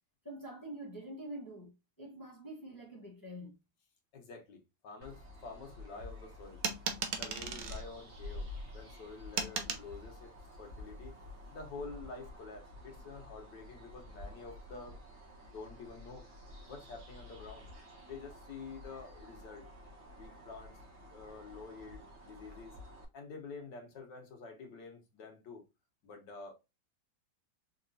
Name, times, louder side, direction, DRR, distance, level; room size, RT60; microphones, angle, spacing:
voice 1, 0.2-3.6, right 1 dB, 15° left, 0.8 m, -46 dB
voice 2, 4.1-6.6 7.2-8.5 8.7-10.3 10.6-11.1 11.5-15.0 15.4-16.3 16.7-17.7 18.0-19.6 20.1-20.8 21.1-22.7 23.1-25.6 26.0-26.5, left 4 dB, 65° left, 1.7 m, -48 dB
sound 1, 5.0-23.0, left 1 dB, 40° right, 1.3 m, -50 dB
sound 2, 6.6-7.8 9.4-9.9, right 6 dB, 65° right, 1.0 m, -36 dB
4.7 x 2.9 x 2.6 m
omnidirectional pair, 2.1 m